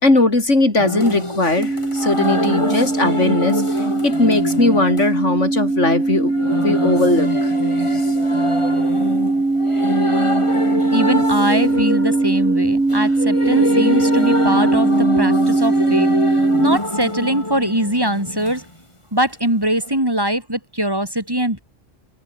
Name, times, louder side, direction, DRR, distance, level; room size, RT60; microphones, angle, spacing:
voice 1, 0.0-7.5 7.9-8.0, left 2 dB, 65° left, 5.4 m, -19 dB
sound 1, 0.8-18.6 19.9-20.0, left 1 dB, 25° left, 3.7 m, -25 dB
sound 2, 1.6-16.8, right 2 dB, 85° right, 4.9 m, -20 dB
voice 2, 10.9-18.7 19.1-21.6, right 1 dB, 15° right, 4.5 m, -22 dB
omnidirectional pair, 1.3 m